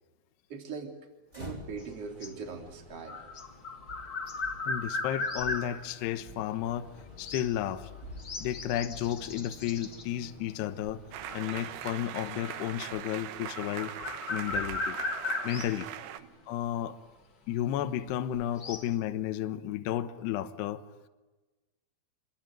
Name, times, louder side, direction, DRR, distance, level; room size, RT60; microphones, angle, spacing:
voice 1, 0.5-0.9 1.4-3.2 16.2-16.4, right 5 dB, 35° right, 3 dB, 3.9 m, -41 dB
sound 1, 1.3-13.3, left 2 dB, 10° right, 3.4 m, -51 dB
sound 2, 1.8-6.3 7.2-7.6 8.0-10.0 10.8-11.8 12.4-13.0 13.3-15.8 16.6-16.7 18.1-18.9, left 3 dB, 40° left, 1.4 m, -37 dB
voice 2, 4.7-6.9 7.2-7.9 8.4-11.0 11.3-13.9 14.3-15.0 15.4-15.9 16.5-17.0 17.5-20.8, left 11 dB, 75° left, 9 dB, 3.0 m, -32 dB
sound 3, 11.1-16.2, right 11 dB, 75° right, 3.1 m, -41 dB
27.5 x 22.0 x 9.1 m, 1.2 s
omnidirectional pair, 5.2 m